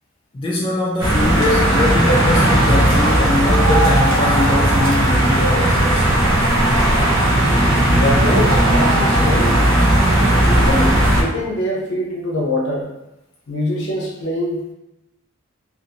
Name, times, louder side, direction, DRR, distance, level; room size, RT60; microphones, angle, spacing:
voice 1, 0.3-6.1, left 2 dB, 25° left, -5 dB, 0.3 m, -21 dB
sound 1, 1.0-11.2, right 1 dB, 70° right, 0.6 m, -15 dB
voice 2, 7.9-9.6 10.5-12.9 13.5-14.7, left 1 dB, 60° left, -2 dB, 0.7 m, -23 dB
2.7 x 2.5 x 2.5 m, 0.90 s
head